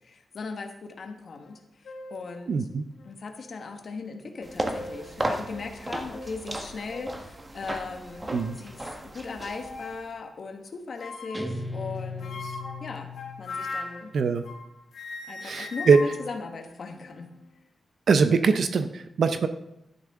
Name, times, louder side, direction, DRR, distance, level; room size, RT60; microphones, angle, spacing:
voice 1, 0.0-2.7 3.0-8.8 9.1-13.1 13.4-14.1 15.3-17.3, left 4 dB, 60° left, 4 dB, 1.4 m, -38 dB
sound 1, 1.4-1.5 1.8-2.2 3.0-3.1 4.3-5.1 5.5-5.7 6.1-6.3 6.9-7.2 7.8-8.6 9.6-10.0 11.0-11.6 12.2-14.7 14.9-17.3, left 3 dB, 80° left, 1.6 m, -40 dB
voice 2, 2.5-2.8 8.3-8.6 14.1-14.4 15.4-16.0 18.1-19.5, right 5 dB, 65° right, 10 dB, 0.6 m, -22 dB
sound 2, 4.4-10.0, right 1 dB, 25° right, 1.3 m, -35 dB
Guitar, 11.3-13.9, left 3 dB, 5° right, 0.6 m, -37 dB
12.0 x 10.5 x 3.6 m, 0.85 s
wide cardioid pair, 100°, 0 cm